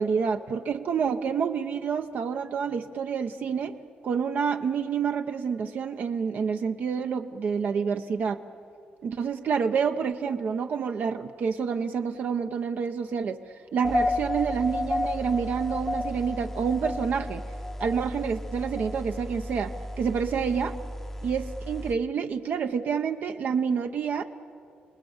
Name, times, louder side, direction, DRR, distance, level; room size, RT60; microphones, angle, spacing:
voice 1, 0.0-3.8 4.0-8.4 9.0-17.4 17.8-19.7 20.0-20.8 21.2-24.2, right 6 dB, 60° right, 7 dB, 0.8 m, -28 dB
sound 1, 13.8-21.9, left 1 dB, 10° left, 0.7 m, -32 dB
29.0 x 20.0 x 7.2 m, 2.4 s
cardioid pair, 125°, 3 cm